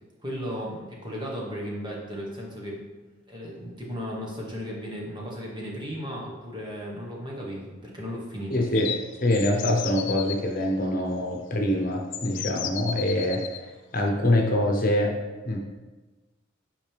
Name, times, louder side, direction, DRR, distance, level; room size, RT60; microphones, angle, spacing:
voice 1, 0.2-2.8 3.3-8.6, equal, 25° right, -3 dB, 1.5 m, -35 dB
voice 2, 8.5-8.9 9.2-13.4 13.9-15.2 15.4-15.6, left 1 dB, 45° left, 1 dB, 1.0 m, -24 dB
sound 1, 8.7-10.4 11.5-11.6 12.1-13.6, left 10 dB, 65° left, 0.5 m, -34 dB
8.7 x 5.2 x 3.5 m, 1.2 s
head